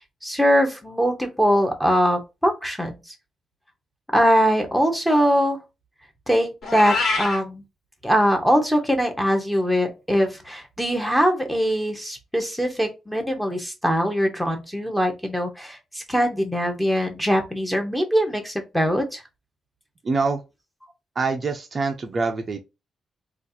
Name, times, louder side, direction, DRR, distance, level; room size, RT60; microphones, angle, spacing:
voice 1, 0.2-2.9 4.1-5.6 6.3-7.6 8.0-19.2, equal, ahead, 0.8 m, -22 dB
Meow, 6.6-7.4, left 3 dB, 55° left, 1.6 m, -24 dB
voice 2, 20.0-20.4 21.2-22.6, right 4 dB, 30° right, 0.5 m, -25 dB
4.0 x 2.4 x 2.7 m
cardioid pair, 140°, 0 cm